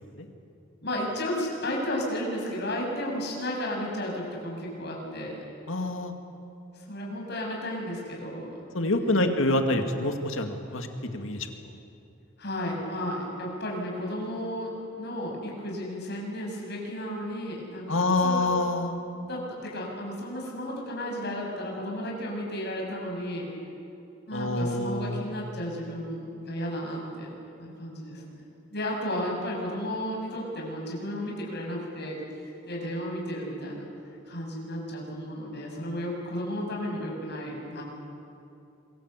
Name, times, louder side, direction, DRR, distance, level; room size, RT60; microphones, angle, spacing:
voice 1, 0.8-5.4 6.7-8.6 9.0-9.3 12.4-18.5 19.3-23.5 24.3-27.3 27.6-28.2 28.7-32.2 32.4-33.8 34.3-37.8, equal, 55° left, -1 dB, 7.3 m, -33 dB
voice 2, 5.7-6.1 8.7-10.9 11.1-11.5 17.9-19.0 24.3-25.2, left 2 dB, 75° left, 5 dB, 2.3 m, -26 dB
27.0 x 22.5 x 8.3 m, 2.7 s
head